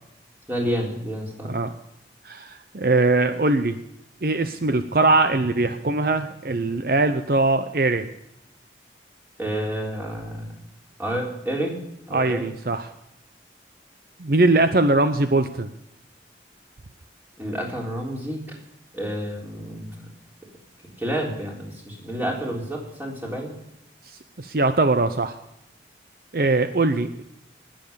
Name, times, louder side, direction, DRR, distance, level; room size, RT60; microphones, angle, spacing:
voice 1, 0.5-1.5 9.4-10.5 11.0-11.7 12.1-12.5 17.4-18.4 18.9-20.1 21.0-23.5, right 1 dB, 10° right, -1 dB, 3.7 m, -29 dB
voice 2, 2.2-3.8 4.2-8.1 12.1-12.9 14.2-15.7 24.4-25.3 26.3-27.2, right 2 dB, 55° right, 9 dB, 0.7 m, -21 dB
20.0 x 7.7 x 6.9 m, 0.82 s
head